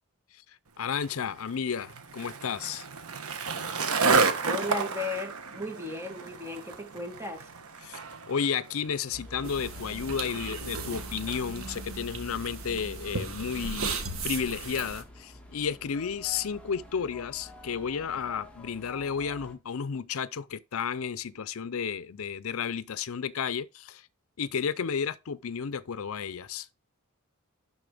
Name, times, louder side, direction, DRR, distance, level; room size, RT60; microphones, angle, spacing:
voice 1, 0.3-2.9 7.8-14.0 14.2-24.1 24.4-26.7, left 6 dB, 70° left, 0.5 m, -32 dB
Skateboard, 0.9-11.4, right 4 dB, 85° right, 1.3 m, -32 dB
voice 2, 4.4-7.5, left 2 dB, 10° right, 2.0 m, -35 dB
sound 1, 9.1-19.5, left 1 dB, 5° left, 1.9 m, -46 dB
sound 2, 9.4-15.0, right 4 dB, 70° right, 1.7 m, -37 dB
12.0 x 4.1 x 5.0 m
head